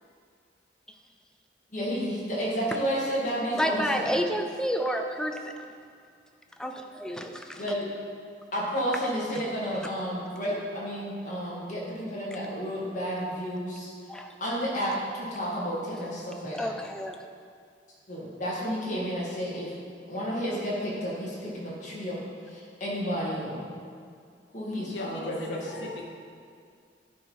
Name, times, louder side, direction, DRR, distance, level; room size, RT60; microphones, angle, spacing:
voice 1, 1.7-4.2 7.6-7.9 8.5-13.9 14.4-16.8 18.1-19.7 20.1-22.2 22.5-23.7 24.5-25.8, equal, 45° left, -6 dB, 2.1 m, -31 dB
voice 2, 3.6-5.7 6.6-7.6 9.3-9.4 9.7-9.9 14.1-14.4 16.5-17.2, equal, 5° left, 4 dB, 0.4 m, -30 dB
voice 3, 24.8-26.0, left 2 dB, 90° left, 0 dB, 1.0 m, -39 dB
11.0 x 4.6 x 4.7 m, 2.2 s
head